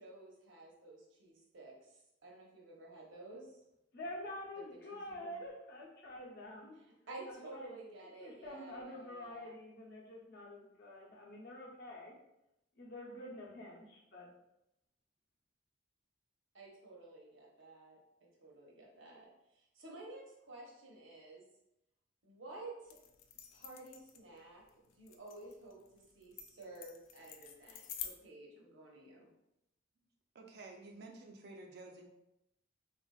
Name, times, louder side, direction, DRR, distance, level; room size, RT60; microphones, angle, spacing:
voice 1, 0.0-3.6 4.9-5.4 6.8-9.5 16.5-18.0 18.4-21.4 22.2-23.0 23.5-24.6 25.0-29.3, right 2 dB, 75° right, -2 dB, 0.8 m, -52 dB
voice 2, 3.9-6.8 7.3-7.7 8.2-12.1 12.8-14.3, left 1 dB, 55° left, -2 dB, 0.7 m, -47 dB
sound 1, 22.9-28.1, left 9 dB, 90° left, 0.3 m, -49 dB
voice 3, 30.3-32.1, right 2 dB, 55° right, 2 dB, 0.3 m, -51 dB
3.3 x 2.5 x 2.3 m, 0.87 s
head